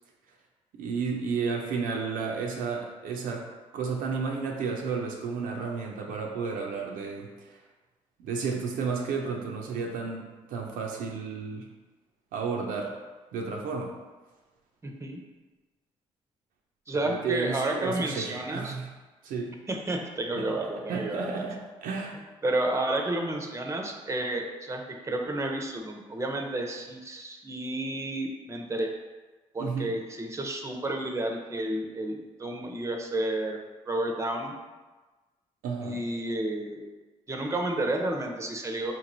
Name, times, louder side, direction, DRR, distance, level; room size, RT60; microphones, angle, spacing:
voice 1, 0.7-3.5 3.7-7.6 8.2-11.7 12.3-12.9 13.3-14.0 16.9-18.9 19.2-19.6 20.4-20.5 20.9-22.2 29.6-29.9 35.6-36.0, right 5 dB, 70° right, 0 dB, 0.5 m, -32 dB
voice 2, 14.8-15.2 16.9-18.8 19.7-21.3 22.4-28.9 29.5-33.6 33.9-34.5 35.8-36.8 37.3-38.9, right 1 dB, 20° right, 3 dB, 0.6 m, -31 dB
3.9 x 3.0 x 2.6 m, 1.2 s
hypercardioid pair, 45°, 15 cm